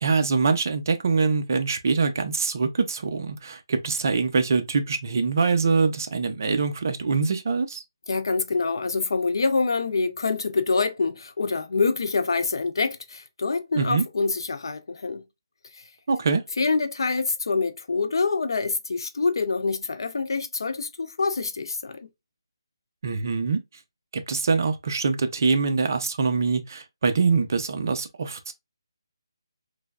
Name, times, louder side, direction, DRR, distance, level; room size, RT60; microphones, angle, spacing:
voice 1, 0.0-7.8 13.7-14.0 16.1-16.4 23.0-23.6 24.1-28.5, right 4 dB, 40° right, 0.5 m, -24 dB
voice 2, 8.1-15.2 16.6-22.1, left 4 dB, 60° left, 0.5 m, -26 dB
3.2 x 2.2 x 2.3 m
hypercardioid pair, 170°, 3 cm